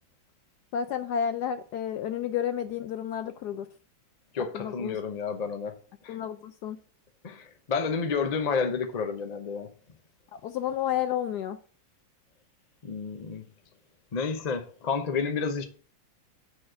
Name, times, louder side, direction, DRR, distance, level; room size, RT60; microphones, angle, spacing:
voice 1, 0.7-3.7 4.5-5.0 6.1-6.8 10.3-11.6, left 9 dB, 75° left, 1.0 m, -31 dB
voice 2, 4.3-5.8 6.0-6.2 7.2-9.7 12.8-13.4 14.1-15.6, left 5 dB, 50° left, 0.5 m, -30 dB
6.6 x 4.3 x 6.3 m
omnidirectional pair, 2.1 m